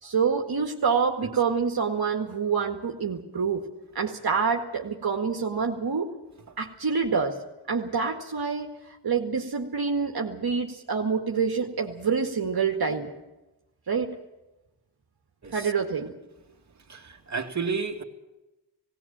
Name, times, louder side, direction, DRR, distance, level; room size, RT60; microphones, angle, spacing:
voice 1, 0.0-3.7 4.0-6.1 6.6-7.4 7.7-13.1 13.9-14.1 15.5-16.1, right 5 dB, 60° right, 1 dB, 2.0 m, -27 dB
voice 2, 16.9-18.0, right 5 dB, 40° right, 1 dB, 2.3 m, -31 dB
18.5 x 17.0 x 8.8 m, 1.0 s
cardioid pair, 75°, 42 cm